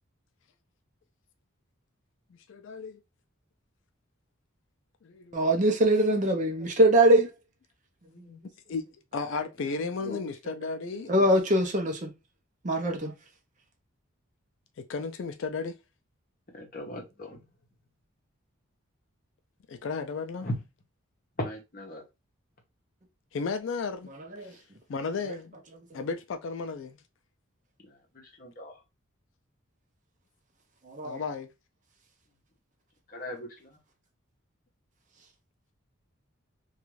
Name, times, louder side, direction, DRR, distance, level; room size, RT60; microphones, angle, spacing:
voice 1, 2.3-3.0 5.0-5.5 7.0-7.2 8.2-8.4 8.7-8.8 9.1-11.3 14.9-15.8 19.7-20.5 23.3-24.1 24.4-24.5 24.9-25.5 25.9-27.0 31.0-31.5, left 4 dB, 60° left, 0.3 m, -34 dB
voice 2, 5.3-7.3 10.6-10.8 11.1-12.1 12.6-13.1 24.4-24.5 25.9-26.0 30.9-31.2, right 1 dB, 35° right, 0.5 m, -23 dB
voice 3, 16.5-17.4 20.4-20.5 21.4-22.0 28.1-28.7 33.1-33.7, left 1 dB, 40° left, 0.8 m, -37 dB
2.5 x 2.3 x 3.0 m
head